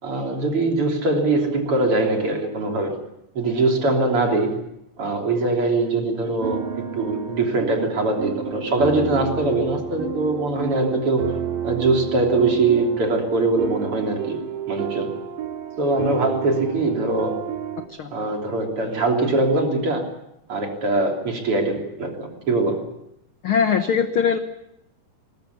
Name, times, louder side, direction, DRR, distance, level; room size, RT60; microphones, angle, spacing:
voice 1, 0.0-3.0 3.4-4.6 5.0-11.4 11.6-14.4 14.7-15.2 15.8-17.5 18.1-20.1 20.5-22.9, right 2 dB, 45° right, 2 dB, 4.0 m, -22 dB
sound 1, 6.4-17.9, right 8 dB, 90° right, 3.4 m, -31 dB
voice 2, 23.4-24.4, left 6 dB, 60° left, 8 dB, 1.4 m, -21 dB
20.5 x 20.5 x 8.4 m, 0.83 s
omnidirectional pair, 3.7 m